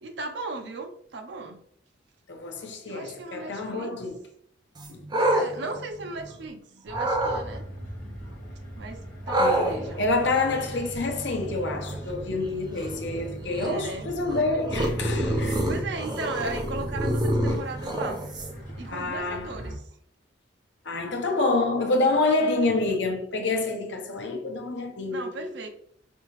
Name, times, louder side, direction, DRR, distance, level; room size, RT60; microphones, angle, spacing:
voice 1, 0.0-1.6 2.9-4.0 5.1-7.7 8.8-10.0 13.6-14.1 15.7-18.2 18.7-19.7 22.4-22.8 25.1-25.7, right 3 dB, 65° right, 0.6 m, -37 dB
voice 2, 2.3-4.2 4.9-5.0 9.4-15.7 18.9-19.5 20.8-25.5, left 3 dB, 65° left, 0.8 m, -27 dB
sound 1, 4.8-6.5 6.9-7.4 9.3-18.7, right 1 dB, 25° right, 0.5 m, -29 dB
sound 2, 6.9-19.8, equal, 40° left, 1.3 m, -41 dB
5.3 x 2.7 x 3.1 m
head